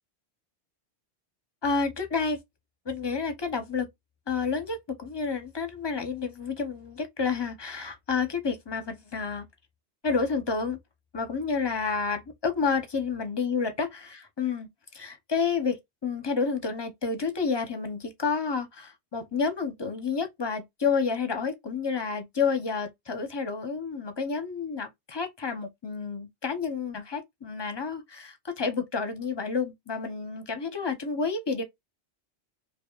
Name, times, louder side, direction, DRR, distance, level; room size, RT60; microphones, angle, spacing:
voice 1, 1.6-2.4 2.9-3.9 4.3-9.5 10.0-10.8 11.1-31.6, left 5 dB, 25° left, 0.7 m, -30 dB
4.6 x 2.9 x 2.3 m
omnidirectional pair, 1.1 m